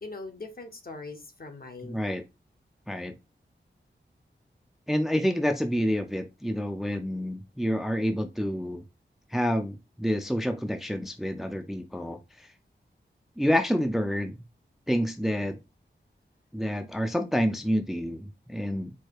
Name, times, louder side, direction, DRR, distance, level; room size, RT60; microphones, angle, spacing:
voice 1, 0.0-2.0, left 3 dB, 50° left, 6 dB, 1.0 m, -41 dB
voice 2, 1.8-2.2 2.9-3.1 4.9-8.8 9.3-12.5 13.4-14.3 14.9-15.6 16.5-18.9, equal, ahead, 6 dB, 0.5 m, -28 dB
4.6 x 2.2 x 4.5 m, 0.24 s
wide cardioid pair, 85°, 20 cm